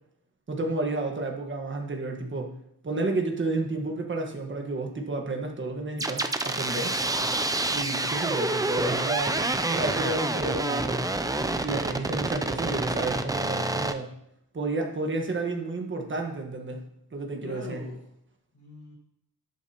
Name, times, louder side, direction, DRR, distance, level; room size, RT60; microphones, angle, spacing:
voice 1, 0.5-2.5 2.8-7.0 7.7-11.1 11.6-14.1 14.5-16.8 17.1-17.8, right 2 dB, 30° right, 2 dB, 1.4 m, -31 dB
sound 1, 6.0-13.9, right 2 dB, 10° right, 0.4 m, -28 dB
voice 2, 7.2-8.2 12.6-12.9 17.4-18.0 18.5-19.0, left 2 dB, 50° left, -4 dB, 4.4 m, -44 dB
12.5 x 8.3 x 2.9 m, 0.75 s
wide cardioid pair, 170°, 38 cm